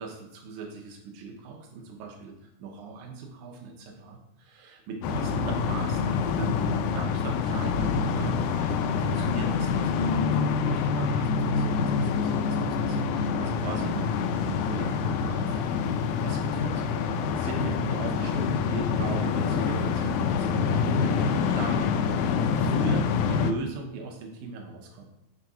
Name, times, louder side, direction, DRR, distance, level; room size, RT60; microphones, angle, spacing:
voice 1, 0.0-15.6 16.2-22.0 22.2-25.1, right 4 dB, 80° right, 1 dB, 2.4 m, -39 dB
sound 1, 5.0-23.5, left 5 dB, 90° left, 2.1 m, -26 dB
6.3 x 4.1 x 4.7 m, 0.92 s
omnidirectional pair, 3.5 m